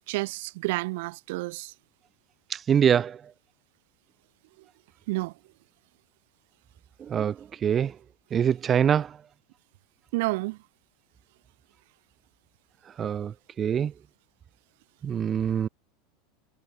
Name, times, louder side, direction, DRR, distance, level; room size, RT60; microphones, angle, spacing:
voice 1, 0.1-1.7 5.1-5.3 10.1-10.6, right 22 dB, 65° right, 2.8 m, -30 dB
voice 2, 2.5-3.2 7.0-7.9 8.3-9.2 13.0-13.9 15.0-15.7, right 8 dB, 25° right, 1.9 m, -24 dB
supercardioid pair, 135°, 0 cm